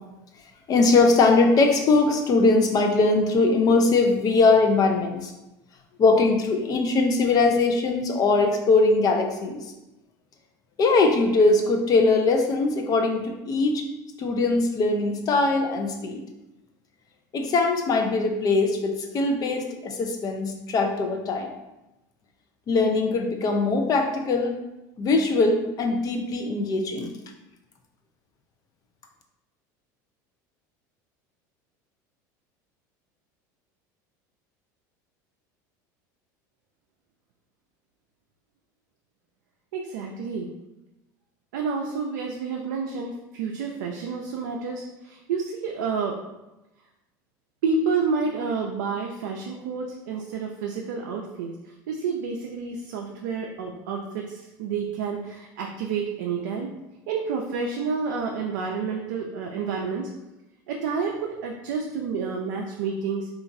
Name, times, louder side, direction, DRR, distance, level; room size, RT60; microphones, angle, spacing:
voice 1, 0.7-5.3 6.0-9.7 10.8-13.8 14.2-16.2 17.3-21.5 22.7-24.6 25.0-27.1, left 3 dB, 40° left, 3 dB, 0.5 m, -21 dB
voice 2, 39.7-40.5 41.5-46.1 47.6-51.5 51.9-56.7 57.1-60.1 60.7-63.3, right 5 dB, 80° right, 1 dB, 0.4 m, -29 dB
2.9 x 2.4 x 2.5 m, 0.98 s
supercardioid pair, 100°, 10 cm